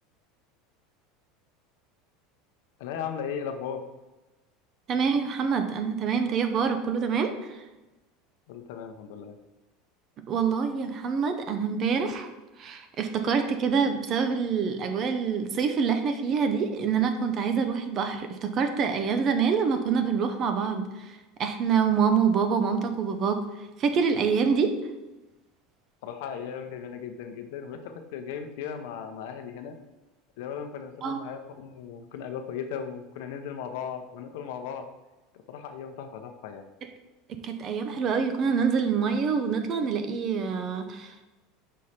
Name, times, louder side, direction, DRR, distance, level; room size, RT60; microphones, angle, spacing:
voice 1, 2.8-3.9 8.5-9.4 26.0-29.8 30.4-34.9 35.5-36.6, left 7 dB, 70° left, 6 dB, 0.7 m, -37 dB
voice 2, 4.9-7.6 10.3-12.3 12.6-21.1 21.4-23.4 23.8-24.8 31.0-31.2 37.4-41.2, right 6 dB, 30° right, 7 dB, 0.6 m, -26 dB
5.6 x 4.2 x 5.0 m, 1.1 s
supercardioid pair, 160°, 0 cm